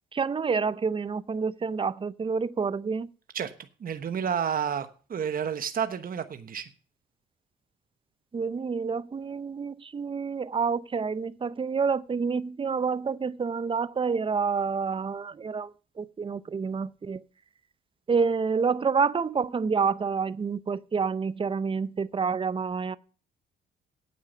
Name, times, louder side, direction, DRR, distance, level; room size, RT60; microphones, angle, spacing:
voice 1, 0.1-3.1 8.3-15.7 16.0-17.2 18.1-23.0, right 5 dB, 25° right, 0.6 m, -28 dB
voice 2, 3.8-6.7, right 8 dB, 45° right, 1.1 m, -30 dB
8.9 x 8.5 x 6.7 m
cardioid pair, 90°, 20 cm